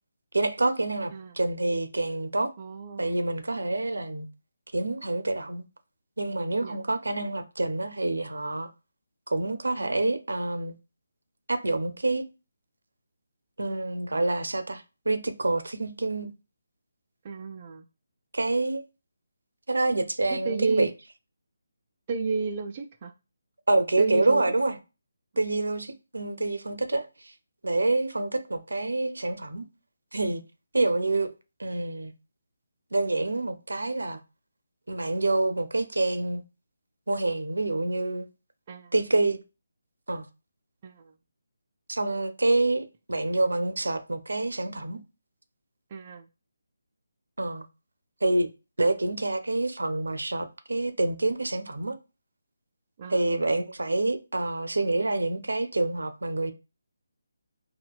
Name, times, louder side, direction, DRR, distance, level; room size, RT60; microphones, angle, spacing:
voice 1, 0.3-2.5 3.0-4.3 4.7-5.6 6.2-8.7 9.3-10.8 11.5-12.2 13.6-16.3 18.3-18.8 19.7-20.9 23.7-24.8 25.4-27.3 27.6-29.6 30.1-30.4 30.7-31.3 31.6-32.1 32.9-34.2 34.9-36.4 37.1-38.3 38.9-39.4 40.1-40.3 41.9-45.0 47.4-47.6 48.2-48.5 48.8-52.0 53.1-56.5, right 2 dB, 80° right, 0.5 m, -27 dB
voice 2, 2.6-3.2 6.6-6.8 17.2-17.9 20.3-20.9 22.1-23.1 24.0-24.4 38.7-38.9 40.8-41.1 45.9-46.3 53.0-53.3, right 4 dB, 30° right, 0.3 m, -32 dB
4.0 x 2.2 x 2.3 m
figure-of-eight pair, 155°, 0 cm